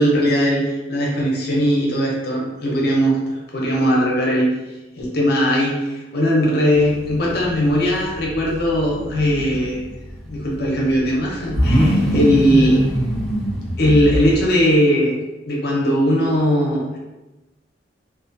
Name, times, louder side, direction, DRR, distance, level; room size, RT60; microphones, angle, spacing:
voice 1, 0.0-4.5 5.0-9.8 10.2-12.8 13.8-15.1 15.5-17.0, equal, 55° left, -3 dB, 0.7 m, -19 dB
sound 1, 6.7-14.5, equal, 5° left, 0.5 m, -23 dB
2.4 x 2.4 x 2.5 m, 1.1 s
head